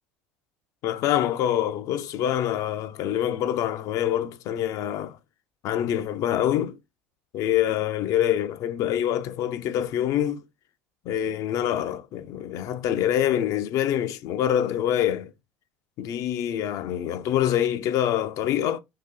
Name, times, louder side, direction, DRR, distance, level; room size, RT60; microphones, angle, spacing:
voice 1, 0.8-5.2 5.6-6.8 7.3-10.4 11.1-15.3 16.0-18.8, left 11 dB, 55° left, 0.4 m, -25 dB
2.7 x 2.6 x 3.7 m
supercardioid pair, 90°, 7 cm